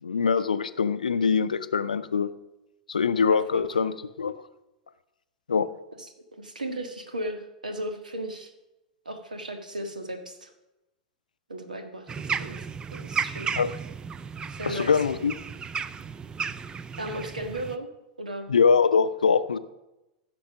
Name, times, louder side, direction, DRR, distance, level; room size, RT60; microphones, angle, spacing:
voice 1, 0.0-2.3 2.9-4.3 5.5-5.7 13.6-13.7 14.7-15.3 18.5-19.6, left 5 dB, 75° left, 13 dB, 0.5 m, -23 dB
voice 2, 3.3-3.9 6.0-8.5 9.0-10.5 11.5-13.5 14.5-15.0 17.0-17.9 18.2-18.5, right 1 dB, 80° right, 6 dB, 1.5 m, -36 dB
sound 1, 12.1-17.8, right 6 dB, 20° right, 0.5 m, -34 dB
15.0 x 6.1 x 5.9 m, 0.98 s
figure-of-eight pair, 95°, 4 cm